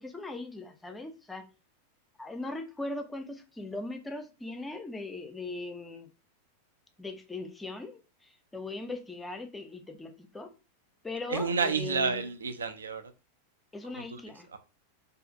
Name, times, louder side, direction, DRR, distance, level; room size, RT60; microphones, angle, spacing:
voice 1, 0.0-1.4 2.2-6.1 7.0-10.5 11.0-12.2 13.7-14.5, left 2 dB, 10° left, 0.4 m, -39 dB
voice 2, 11.3-13.0 13.9-14.2 14.5-14.6, right 5 dB, 70° right, 0.3 m, -30 dB
2.4 x 2.3 x 2.5 m
figure-of-eight pair, 90°, 0 cm